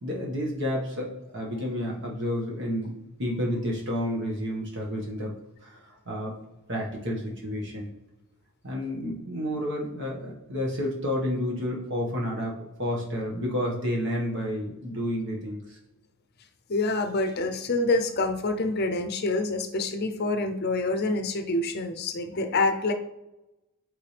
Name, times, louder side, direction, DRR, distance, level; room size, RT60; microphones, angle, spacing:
voice 1, 0.0-2.9 3.2-5.3 6.0-6.3 6.7-7.9 8.6-15.8, equal, 55° right, -2 dB, 1.5 m, -30 dB
voice 2, 16.7-22.9, left 2 dB, 50° left, 7 dB, 0.6 m, -26 dB
8.7 x 3.7 x 3.3 m, 0.97 s
head